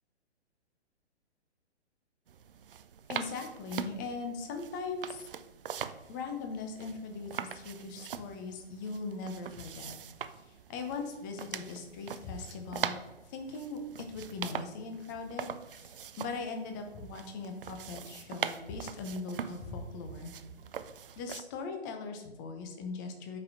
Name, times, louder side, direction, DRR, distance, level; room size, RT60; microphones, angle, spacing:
sound 1, 2.3-21.4, right 8 dB, 55° right, 0.4 m, -42 dB
voice 1, 3.1-5.3 6.1-9.9 10.5-13.0 13.3-20.3 21.2-23.4, left 4 dB, 20° left, 5 dB, 0.6 m, -40 dB
7.9 x 5.2 x 2.7 m, 1.1 s
figure-of-eight pair, 125°, 33 cm